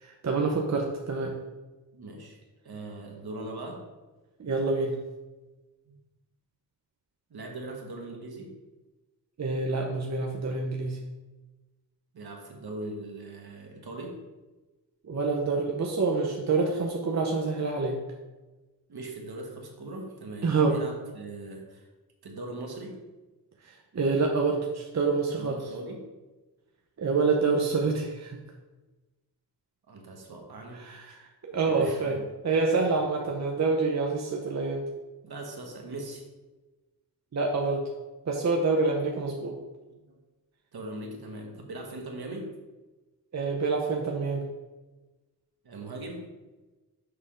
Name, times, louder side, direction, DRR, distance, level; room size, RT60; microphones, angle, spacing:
voice 1, 0.0-1.3 4.4-4.9 9.4-11.0 15.1-18.0 20.4-20.8 23.9-25.6 27.0-28.4 30.7-31.1 31.4-32.2 32.4-34.9 37.3-37.8 38.3-39.5 43.3-44.4, right 4 dB, 40° right, 1 dB, 0.8 m, -27 dB
voice 2, 1.9-2.4 2.6-3.9 5.8-6.0 7.3-8.5 12.1-14.2 18.9-21.8 22.2-23.0 25.4-26.1 29.9-30.8 31.6-32.2 32.7-32.9 35.2-36.2 39.9-40.2 40.7-42.5 45.6-46.3, right 2 dB, 65° right, 1 dB, 1.4 m, -40 dB
6.6 x 3.5 x 5.1 m, 1.2 s
cardioid pair, 70°, 40 cm